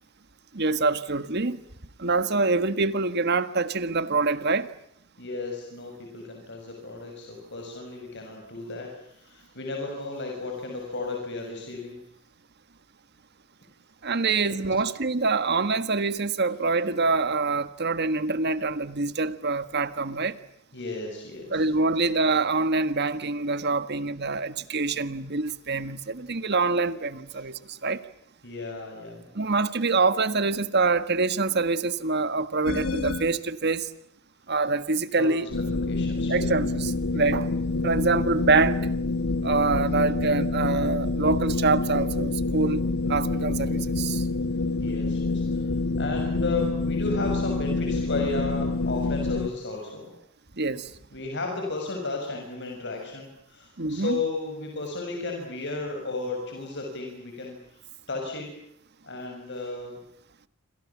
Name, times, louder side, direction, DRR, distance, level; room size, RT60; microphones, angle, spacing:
voice 1, 0.5-1.6 2.0-4.7 14.0-20.4 21.5-28.0 29.3-33.9 34.5-35.5 36.3-37.5 37.8-38.9 39.4-42.8 43.1-44.3 50.6-50.9 53.8-54.2, right 3 dB, 50° right, 1.5 m, -25 dB
voice 2, 5.2-12.0 14.2-14.9 20.7-21.6 28.4-29.2 35.1-36.5 44.8-45.6 46.0-50.1 51.1-57.8 58.1-58.5 59.0-60.0, left 3 dB, 55° left, 6.8 m, -34 dB
sound 1, 32.7-33.4 35.5-49.5, left 3 dB, 75° left, 1.5 m, -27 dB
27.5 x 27.0 x 7.3 m
head